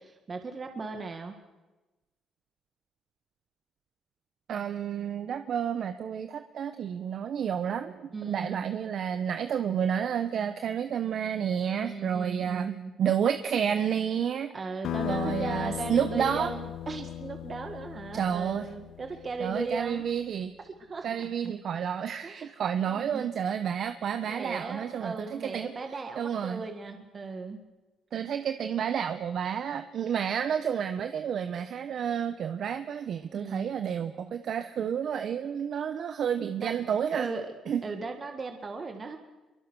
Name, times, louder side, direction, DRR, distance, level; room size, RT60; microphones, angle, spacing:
voice 1, 0.0-1.4 8.1-8.7 11.8-12.9 14.5-20.1 20.9-21.3 22.2-22.5 22.9-23.2 24.3-27.6 33.3-33.7 36.6-36.7 37.1-37.6 37.8-39.2, right 4 dB, 35° right, 5 dB, 1.9 m, -37 dB
voice 2, 4.5-14.5 15.0-16.5 18.1-18.7 19.4-20.5 21.0-25.7 26.2-26.6 28.1-37.3 37.7-37.8, right 8 dB, 65° right, 9 dB, 1.1 m, -30 dB
sound 1, 14.8-20.0, left 10 dB, 75° left, 1.1 m, -37 dB
25.5 x 23.5 x 6.4 m, 1.1 s
cardioid pair, 90°, 0 cm